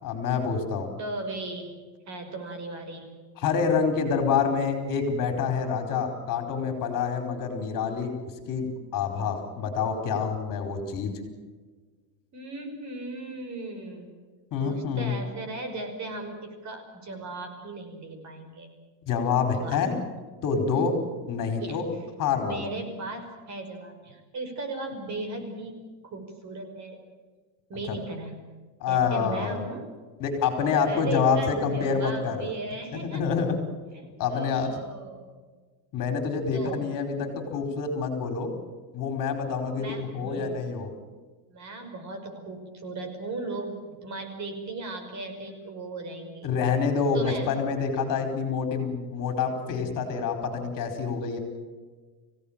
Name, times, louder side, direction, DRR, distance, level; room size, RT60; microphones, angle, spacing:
voice 1, 0.0-0.9 3.4-8.1 8.5-11.1 14.5-15.1 19.1-20.0 20.4-21.0 21.3-21.8 22.2-22.7 27.9-28.0 28.8-29.7 30.2-32.5 32.9-33.6 34.2-34.7 35.9-38.5 38.9-40.9 46.4-51.4, left 5 dB, 40° left, 6 dB, 4.8 m, -27 dB
voice 2, 1.0-1.7 2.1-3.1 12.3-14.1 14.6-18.7 19.5-19.9 21.6-21.8 22.4-25.8 26.0-27.0 27.7-28.4 28.9-29.8 30.9-33.2 33.9-35.3 36.5-36.9 39.8-40.6 41.5-46.5 47.1-47.5, right 2 dB, 35° right, 5 dB, 5.5 m, -37 dB
25.0 x 17.0 x 9.0 m, 1.4 s
supercardioid pair, 135°, 49 cm